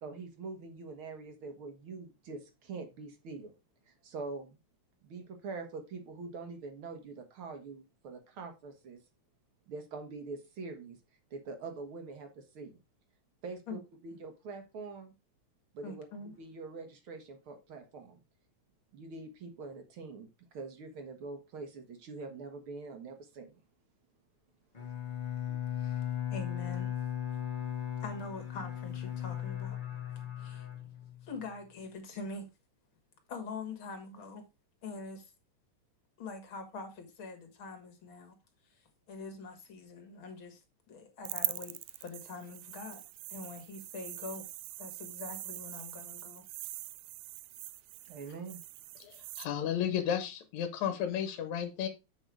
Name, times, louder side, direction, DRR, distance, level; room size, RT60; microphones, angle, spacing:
voice 1, 0.0-3.5 4.0-4.6 5.0-9.0 9.7-11.0 11.3-12.8 13.4-15.1 15.7-16.1 16.4-18.2 18.9-20.3 20.5-23.6 48.1-48.6, right 3 dB, 55° right, 1.8 m, -44 dB
voice 2, 15.8-16.3 25.5-26.9 28.0-29.8 30.4-30.7 31.2-32.5 33.3-34.4 34.8-35.3 36.2-38.4 39.1-40.6 40.9-43.0 43.3-44.4 44.8-46.4 48.2-48.4, left 3 dB, 45° left, 2.3 m, -44 dB
Bowed string instrument, 24.7-31.4, left 10 dB, 25° left, 1.0 m, -37 dB
sound 1, 41.2-49.5, right 16 dB, 80° right, 1.5 m, -42 dB
voice 3, 49.0-51.9, left 9 dB, 75° left, 2.3 m, -33 dB
7.9 x 5.4 x 4.6 m
omnidirectional pair, 3.3 m